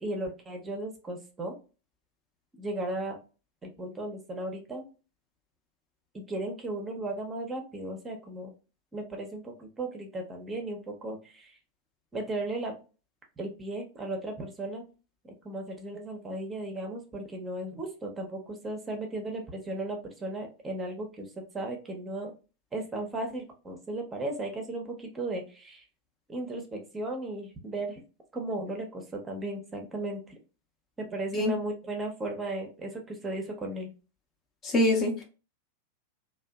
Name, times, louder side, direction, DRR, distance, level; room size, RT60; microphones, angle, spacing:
voice 1, 0.0-1.5 2.6-3.2 3.6-4.8 6.1-8.5 8.9-11.6 12.1-12.8 13.4-14.8 15.4-22.3 22.7-25.8 26.3-28.0 28.3-30.3 31.0-33.9, right 2 dB, 15° right, 2 dB, 0.6 m, -36 dB
voice 2, 34.6-35.2, left 1 dB, 25° left, 3 dB, 0.5 m, -24 dB
2.6 x 2.1 x 2.2 m, 0.34 s
figure-of-eight pair, 90°, 0 cm